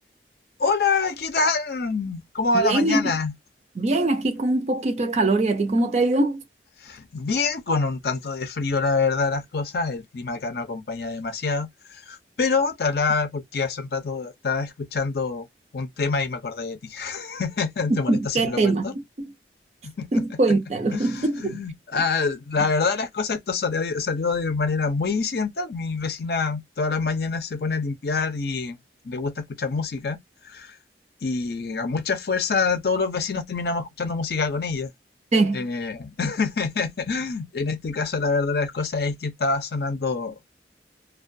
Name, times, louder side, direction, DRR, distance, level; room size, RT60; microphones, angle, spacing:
voice 1, 0.6-3.3 6.8-15.5 15.7-18.9 19.8-20.2 20.9-28.8 29.0-30.2 30.4-30.8 31.2-34.9 35.5-40.4, left 4 dB, 60° left, 0.5 m, -26 dB
voice 2, 2.5-3.1 3.8-6.4 17.9-19.0 20.1-21.6 35.3-35.6, right 2 dB, 40° right, 0.4 m, -22 dB
2.2 x 2.2 x 2.5 m
head